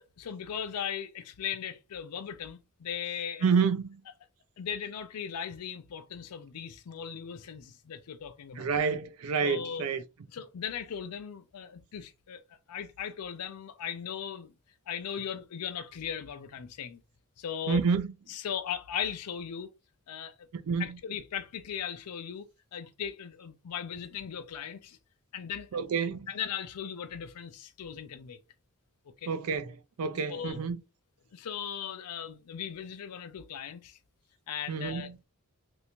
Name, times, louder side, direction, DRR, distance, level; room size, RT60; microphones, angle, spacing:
voice 1, 0.2-3.5 4.6-8.7 9.4-9.9 10.3-12.4 12.7-14.5 14.9-17.0 17.4-17.8 18.3-19.7 20.1-20.4 20.8-25.0 25.3-25.7 26.3-28.4 29.2-29.3 30.3-30.6 31.3-34.0 34.5-35.1, left 8 dB, 90° left, 0.4 m, -38 dB
voice 2, 3.4-3.9 8.6-10.0 17.7-18.1 20.7-20.9 25.7-26.3 29.3-30.8 34.7-35.2, right 5 dB, 70° right, 0.4 m, -28 dB
3.3 x 2.6 x 2.9 m
head